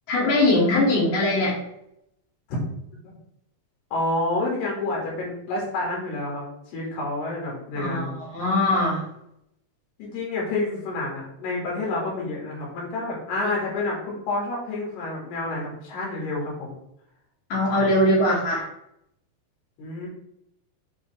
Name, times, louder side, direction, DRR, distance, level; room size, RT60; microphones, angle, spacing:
voice 1, 0.1-1.6 7.8-9.0 17.5-18.6, left 1 dB, 55° left, -6 dB, 3.8 m, -21 dB
voice 2, 3.9-8.2 10.0-16.7 19.8-20.1, left 2 dB, 70° left, -3 dB, 4.2 m, -29 dB
8.6 x 3.5 x 3.4 m, 0.78 s
omnidirectional pair, 5.1 m